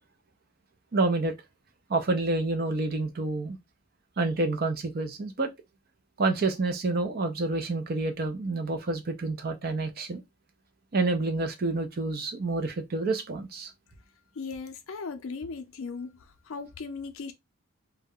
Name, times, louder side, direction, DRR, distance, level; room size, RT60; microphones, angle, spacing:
voice 1, 0.9-1.3 1.9-3.6 4.2-5.5 6.2-10.2 10.9-13.7, right 3 dB, 45° right, 0.5 m, -28 dB
voice 2, 14.4-16.1 16.5-17.3, left 4 dB, 65° left, 0.5 m, -37 dB
2.3 x 2.1 x 3.5 m
head